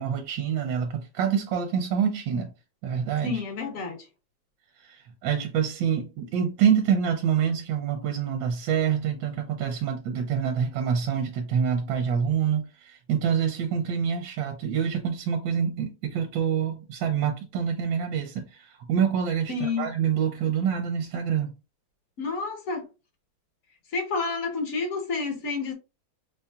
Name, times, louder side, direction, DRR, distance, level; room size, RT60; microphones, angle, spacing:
voice 1, 0.0-2.5 2.8-3.4 4.8-21.5, right 7 dB, 75° right, 1.3 m, -26 dB
voice 2, 3.2-4.0 19.5-19.9 22.2-22.8 23.9-25.7, left 4 dB, 50° left, 1.2 m, -29 dB
5.3 x 2.7 x 2.3 m
omnidirectional pair, 2.1 m